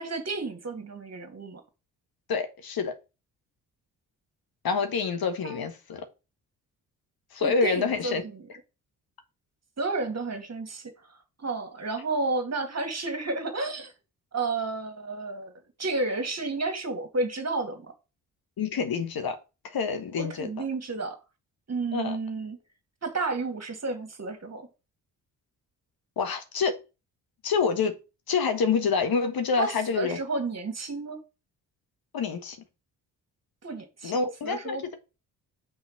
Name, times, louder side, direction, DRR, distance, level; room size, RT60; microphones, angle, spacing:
voice 1, 0.0-1.6 5.4-5.6 7.4-8.5 9.8-10.9 11.4-13.9 14.3-15.5 15.8-17.9 20.1-21.2 21.7-22.6 23.0-24.7 29.6-31.2 33.6-34.8, right 3 dB, 35° right, 2.4 m, -31 dB
voice 2, 2.3-2.9 4.6-6.1 7.3-8.2 18.6-19.4 19.6-20.5 21.9-22.2 26.2-26.7 27.4-27.9 28.3-30.2 32.1-32.6 34.0-35.0, left 5 dB, 50° left, 1.4 m, -27 dB
5.7 x 4.3 x 6.0 m
hypercardioid pair, 40°, 46 cm